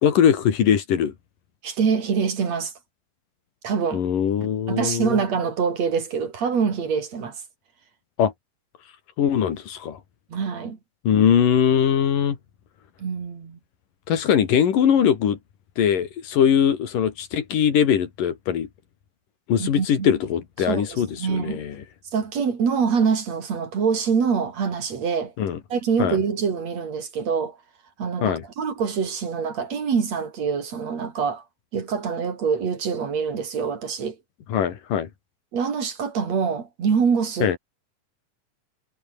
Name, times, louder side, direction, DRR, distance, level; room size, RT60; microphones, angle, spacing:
voice 1, 0.0-1.1 3.9-5.2 8.2-8.3 9.2-10.0 11.0-12.4 14.1-15.4 15.8-18.7 19.5-21.8 25.4-25.6 26.0-26.2 28.2-28.4 34.5-35.1 37.4-37.6, left 8 dB, 90° left, 4.2 m, -21 dB
voice 2, 1.6-2.7 3.6-4.0 4.4-7.4 10.3-10.8 13.0-13.6 19.6-20.1 20.7-21.6 22.1-25.3 25.7-27.6 28.0-31.4 31.7-34.2 35.5-37.6, right 6 dB, 55° right, 4.3 m, -25 dB
omnidirectional pair, 3.7 m